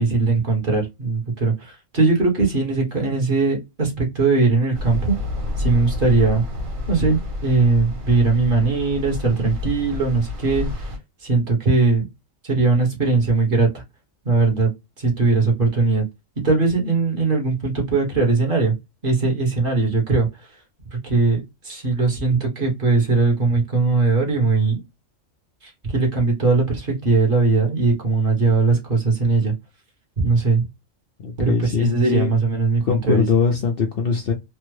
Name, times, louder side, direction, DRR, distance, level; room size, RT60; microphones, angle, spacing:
voice 1, 0.0-5.2 5.6-6.5 6.9-10.7 11.2-12.1 12.4-13.8 14.2-14.7 15.0-16.0 16.4-18.7 19.0-20.3 21.0-24.8 25.9-29.5 30.2-30.6 31.4-33.3, right 3 dB, 45° right, 1.3 m, -20 dB
sound 1, 4.7-11.0, left 2 dB, 90° right, 1.7 m, -29 dB
voice 2, 31.2-32.3 32.8-34.3, left 5 dB, 55° left, 0.7 m, -21 dB
3.4 x 2.1 x 3.1 m
omnidirectional pair, 1.3 m